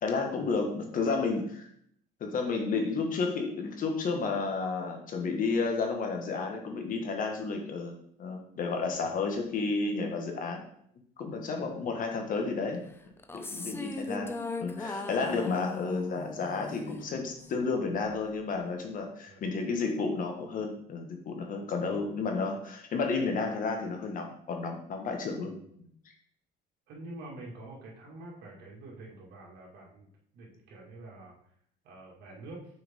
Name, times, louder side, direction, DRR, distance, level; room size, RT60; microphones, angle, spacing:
voice 1, 0.0-1.7 2.2-10.6 11.2-12.8 13.3-14.3 14.6-25.9, left 4 dB, 55° left, 3 dB, 1.3 m, -32 dB
sound 1, 13.2-17.6, left 3 dB, 15° left, 0.5 m, -39 dB
voice 2, 26.9-30.1 30.3-31.3 31.8-32.6, right 2 dB, 75° right, -2 dB, 2.1 m, -47 dB
6.2 x 4.7 x 3.6 m, 0.67 s
cardioid pair, 110°, 17 cm